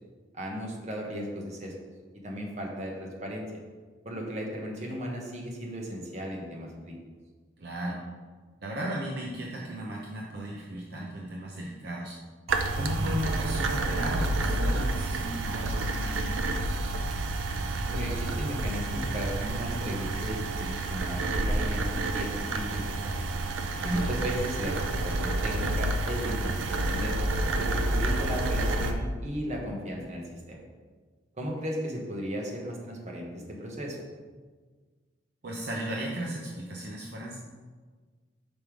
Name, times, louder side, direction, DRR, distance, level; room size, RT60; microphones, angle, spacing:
voice 1, 0.3-1.7 2.2-3.6 4.0-6.9 17.9-21.8 22.1-23.1 23.8-27.1 27.6-30.6 31.4-34.1, equal, 35° right, -1 dB, 1.2 m, -36 dB
voice 2, 7.6-8.0 8.6-12.2 12.8-16.4 23.8-24.3 35.4-37.4, right 1 dB, 55° right, -2 dB, 0.7 m, -35 dB
sound 1, 12.5-28.9, right 2 dB, 90° right, 0.6 m, -29 dB
5.5 x 5.3 x 4.7 m, 1.5 s
head